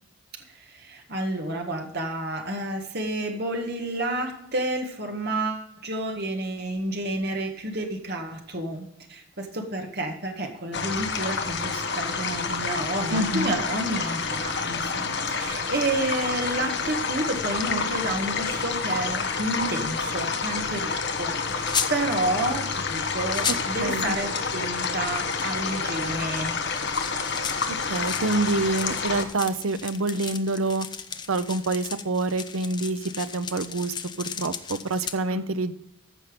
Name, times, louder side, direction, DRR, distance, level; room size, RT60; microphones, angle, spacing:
voice 1, 0.3-26.6 35.3-35.4, right 1 dB, 50° right, 3 dB, 1.7 m, -30 dB
sound 1, 10.7-29.2, left 4 dB, 50° left, 1.1 m, -29 dB
voice 2, 13.1-13.5 23.5-24.2 27.7-30.9 31.3-35.7, right 2 dB, 75° right, 12 dB, 0.7 m, -27 dB
sound 2, 21.6-21.9 23.0-23.1 23.3-23.7 25.0-35.1, left 7 dB, 20° left, 0.5 m, -35 dB
14.5 x 5.8 x 5.1 m, 0.78 s
head